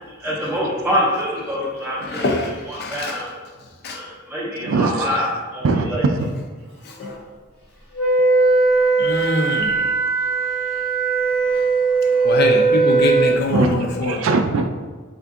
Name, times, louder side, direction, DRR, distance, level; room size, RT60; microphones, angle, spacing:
voice 1, 0.1-2.3 2.7-3.3 3.9-6.0, equal, 10° right, -7 dB, 0.5 m, -25 dB
voice 2, 2.0-3.2 3.8-4.0 6.8-7.2 9.0-10.0 11.5-11.7 12.0-14.3, left 2 dB, 50° left, 2 dB, 0.5 m, -24 dB
voice 3, 4.6-5.3 5.6-6.1 7.1-7.2 9.1-9.2 10.4-10.8 11.7-12.3 13.5-13.7 14.0-14.8, right 3 dB, 70° right, 7 dB, 0.3 m, -22 dB
Wind instrument woodwind instrument, 8.0-13.4, right 4 dB, 70° left, 1.0 m, -18 dB
3.5 x 2.6 x 3.5 m, 1.4 s
head